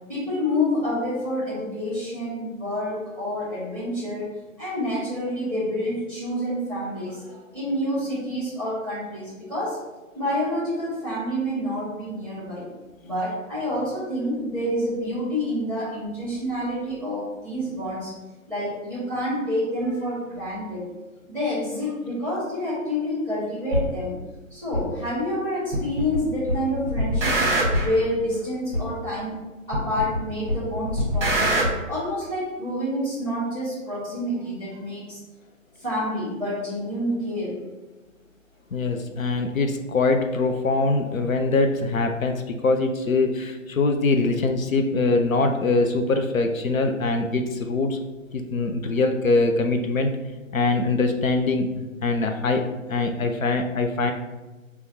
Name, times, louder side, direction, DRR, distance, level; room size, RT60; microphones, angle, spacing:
voice 1, 0.1-4.3 4.6-9.8 10.1-12.7 13.0-18.1 18.5-20.9 21.3-24.1 24.5-27.5 27.8-29.3 29.7-31.6 31.9-35.2 35.8-37.7, left 1 dB, 5° left, -9 dB, 1.0 m, -28 dB
sound 1, 23.7-23.8 24.7-24.8 25.7-26.2 26.5-27.9 28.7-28.8 29.7-30.2 30.5-31.7, equal, 20° right, 0.8 m, -23 dB
voice 2, 38.7-48.0 48.3-50.1 50.5-52.6 52.9-54.1, left 3 dB, 75° left, 5 dB, 0.5 m, -23 dB
5.5 x 2.3 x 2.7 m, 1.2 s
figure-of-eight pair, 135°, 41 cm